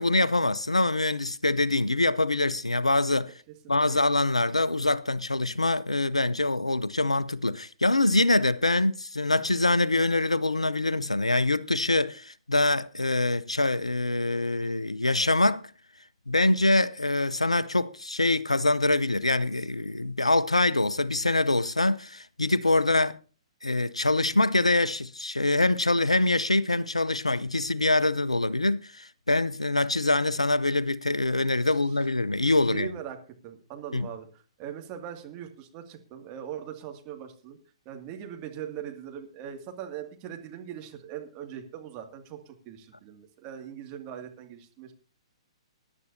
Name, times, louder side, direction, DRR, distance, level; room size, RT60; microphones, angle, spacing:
voice 1, 0.0-3.3 3.7-15.7 16.3-23.2 23.6-32.9 33.9-34.1, left 2 dB, 90° left, 0.6 m, -24 dB
voice 2, 3.6-4.0 31.8-32.0 32.7-37.6 37.9-44.9, right 9 dB, 30° right, 2.2 m, -41 dB
21.5 x 11.0 x 2.7 m
figure-of-eight pair, 120°, 3 cm